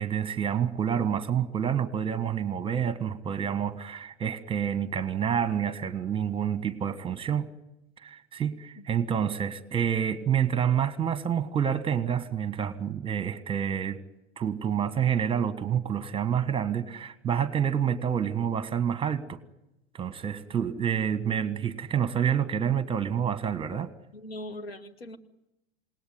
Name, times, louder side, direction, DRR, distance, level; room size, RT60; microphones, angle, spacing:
voice 1, 0.0-7.5 8.0-14.0 14.4-19.4 19.9-23.9, right 8 dB, 15° right, 14 dB, 1.4 m, -28 dB
voice 2, 24.1-25.2, left 1 dB, 75° left, 8 dB, 1.8 m, -40 dB
28.5 x 18.5 x 9.6 m, 0.94 s
figure-of-eight pair, 90°, 31 cm